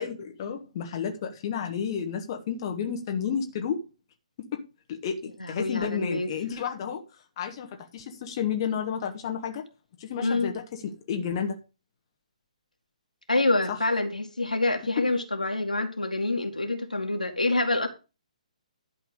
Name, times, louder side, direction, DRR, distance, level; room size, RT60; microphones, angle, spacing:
voice 1, 0.0-3.8 4.5-7.0 7.4-9.7 10.0-11.6 13.7-13.8 15.0-15.1, left 7 dB, 35° left, 1.4 m, -31 dB
voice 2, 5.4-6.3 10.2-10.5 13.3-17.9, left 2 dB, 80° left, 2.1 m, -26 dB
11.5 x 4.5 x 6.5 m
figure-of-eight pair, 135°, 4 cm